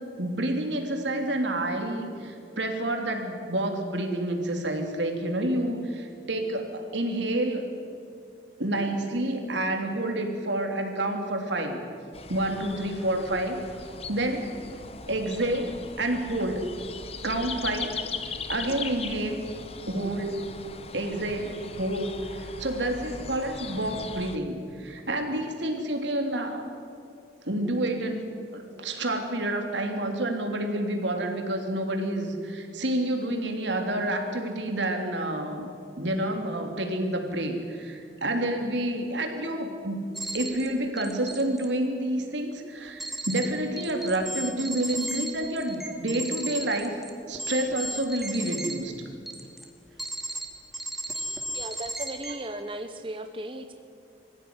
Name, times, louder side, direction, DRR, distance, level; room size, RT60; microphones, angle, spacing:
voice 1, 0.2-7.6 8.6-11.8 12.3-13.6 14.1-14.5 15.1-16.7 17.2-18.0 18.5-19.4 19.9-20.5 20.9-26.7 27.5-28.3 28.5-35.7 36.0-40.0 40.3-47.0 47.3-49.0, right 1 dB, 80° right, 3 dB, 3.4 m, -29 dB
sound 1, 12.1-24.4, left 4 dB, 35° left, 1.1 m, -39 dB
sound 2, 40.1-40.7 41.0-41.6 43.0-43.5 43.8-48.7 49.3-49.6 50.0-50.4 50.7-52.3, right 1 dB, ahead, 2.5 m, -34 dB
voice 2, 51.5-53.7, right 1 dB, 30° right, 7 dB, 1.0 m, -36 dB
24.0 x 16.0 x 9.8 m, 2.5 s
head